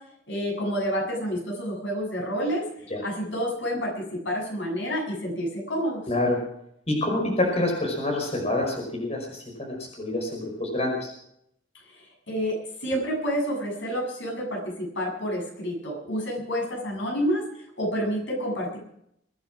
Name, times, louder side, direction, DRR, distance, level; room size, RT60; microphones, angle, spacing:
voice 1, 0.3-2.6 3.0-6.0 11.9-17.4 17.8-18.8, equal, 85° left, -1 dB, 7.5 m, -29 dB
voice 2, 6.1-6.4 6.9-11.1, left 1 dB, 35° left, 0 dB, 5.1 m, -27 dB
23.5 x 9.4 x 6.0 m, 0.73 s
head